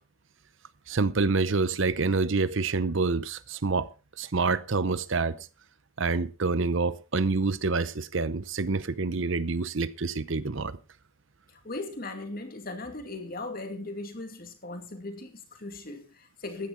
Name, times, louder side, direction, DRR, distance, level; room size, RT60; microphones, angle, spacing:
voice 1, 0.9-3.9 4.2-5.4 6.0-10.7, right 3 dB, 60° right, 0.8 m, -27 dB
voice 2, 11.5-16.7, left 2 dB, 40° left, 2.4 m, -38 dB
14.5 x 10.5 x 4.5 m
head